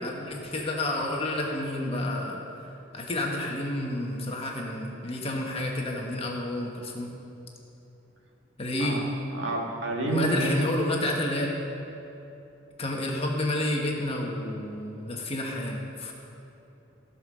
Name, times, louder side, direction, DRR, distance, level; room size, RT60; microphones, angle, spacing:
voice 1, 0.0-2.4 2.9-7.1 8.6-9.1 10.0-11.5 12.8-16.1, left 1 dB, 30° left, 0 dB, 1.4 m, -30 dB
voice 2, 9.3-10.5, right 3 dB, 65° right, 0 dB, 1.7 m, -29 dB
16.0 x 5.5 x 6.6 m, 2.9 s
head